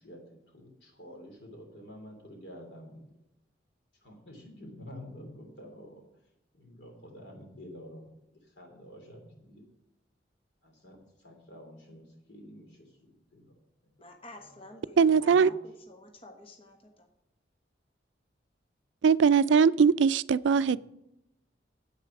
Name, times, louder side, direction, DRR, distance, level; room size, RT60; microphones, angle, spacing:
voice 1, 0.0-3.1 4.0-6.0 6.5-9.6 10.6-13.0 13.3-13.5 13.8-14.0 14.3-15.6 20.6-20.8, equal, 65° left, 2 dB, 3.2 m, -49 dB
voice 2, 14.0-16.8, left 1 dB, 30° left, 3 dB, 1.2 m, -50 dB
voice 3, 15.0-15.5 19.0-20.8, right 6 dB, 80° right, 17 dB, 0.4 m, -21 dB
9.8 x 8.2 x 6.0 m, 0.86 s
head